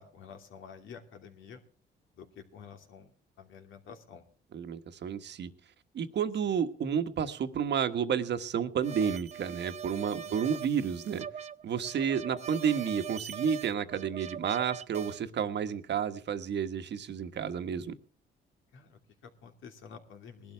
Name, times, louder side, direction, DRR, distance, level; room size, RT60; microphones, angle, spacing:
voice 1, 0.0-1.6 2.1-4.2 10.2-10.3 18.7-20.5, left 6 dB, 80° left, 4 dB, 2.8 m, -50 dB
voice 2, 4.5-5.5 5.9-11.3 11.6-17.9, right 7 dB, 60° right, 8 dB, 1.4 m, -31 dB
sound 1, 8.8-15.2, right 8 dB, 35° right, 0.7 m, -41 dB
20.5 x 12.0 x 3.4 m, 0.43 s
cardioid pair, 90°, 20 cm